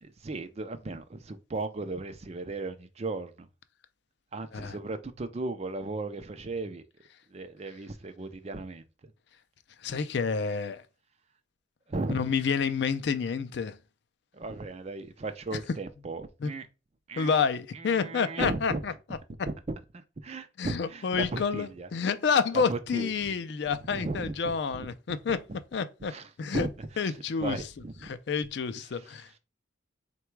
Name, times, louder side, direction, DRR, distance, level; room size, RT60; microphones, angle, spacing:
voice 1, 0.0-3.5 4.3-6.8 7.3-8.8 11.9-12.2 14.3-16.7 17.1-17.3 17.7-18.8 19.5-19.6 19.9-21.9 22.5-23.4 23.9-25.4 26.1-28.1 28.9-29.2, right 3 dB, 35° right, 0.4 m, -36 dB
voice 2, 9.8-10.8 12.1-13.8 15.5-15.6 16.4-16.5 17.2-18.9 20.6-25.4 25.7-26.1 26.4-26.7 27.0-27.6 28.0-29.4, left 5 dB, 60° left, 0.4 m, -29 dB
3.9 x 2.2 x 4.5 m
head